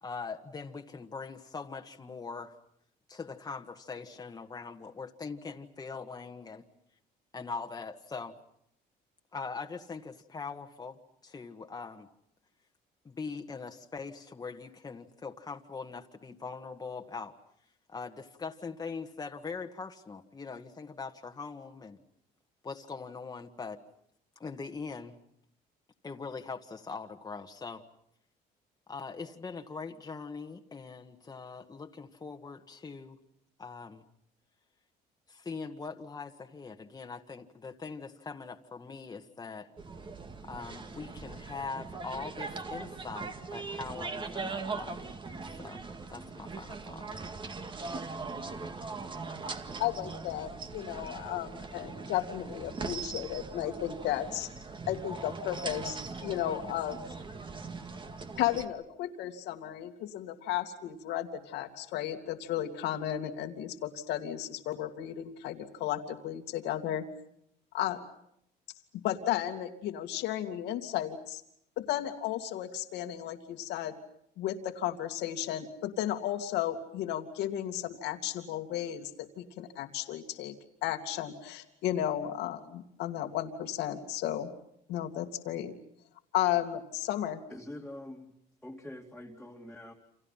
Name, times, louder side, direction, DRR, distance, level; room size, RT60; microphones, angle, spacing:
voice 1, 0.0-2.5 3.1-6.6 7.3-8.4 9.3-12.1 13.1-17.3 17.9-22.0 22.6-23.8 24.4-25.2 26.0-27.8 28.9-33.2 33.6-34.0 35.3-39.7 40.4-45.1 45.5-45.8 46.1-47.1, left 4 dB, 20° left, 4 dB, 1.7 m, -42 dB
sound 1, 39.8-58.7, right 4 dB, 30° right, 2.0 m, -40 dB
voice 2, 49.8-54.5 54.9-57.0 58.4-67.0 67.7-68.0 69.0-71.4 71.8-73.9 74.4-80.5 80.8-84.5 84.9-85.7 86.3-87.4, left 12 dB, 85° left, 5 dB, 2.4 m, -34 dB
voice 3, 87.5-88.3 88.6-89.9, left 1 dB, 5° left, -2 dB, 2.6 m, -45 dB
29.5 x 27.5 x 5.8 m, 0.74 s
cardioid pair, 110°, 17 cm